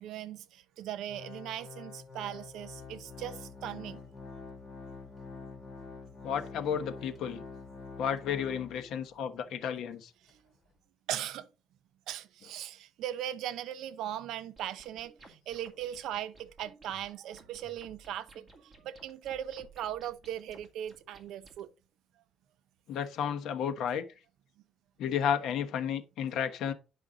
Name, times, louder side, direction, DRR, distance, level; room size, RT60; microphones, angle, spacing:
voice 1, 0.0-4.0 11.1-11.5 12.1-18.4 18.8-21.7, right 11 dB, 85° right, 0.7 m, -39 dB
Organ, 1.1-9.1 9.5-9.6 10.3-10.4, left 4 dB, 25° left, 2.1 m, -46 dB
voice 2, 6.2-7.4 8.0-10.1 22.9-24.1 25.0-26.7, left 8 dB, 70° left, 1.1 m, -32 dB
sound 1, 14.6-21.6, right 2 dB, 15° right, 2.1 m, -57 dB
10.0 x 5.6 x 3.9 m
cardioid pair, 180°, 0 cm